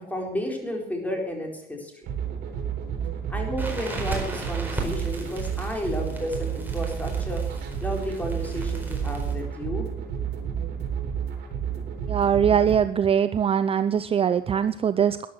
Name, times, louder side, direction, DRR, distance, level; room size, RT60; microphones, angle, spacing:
voice 1, 0.1-1.9 3.3-7.4 7.8-9.9, equal, 10° left, 1 dB, 4.5 m, -32 dB
Sunday Acid jam, 2.0-12.8, right 8 dB, 70° right, 3.6 m, -31 dB
Crackle, 3.6-9.4, right 2 dB, 10° right, 4.5 m, -36 dB
voice 2, 12.1-15.3, right 8 dB, 35° right, 12 dB, 0.5 m, -22 dB
13.5 x 10.5 x 6.4 m, 0.75 s
cardioid pair, 110°, 17 cm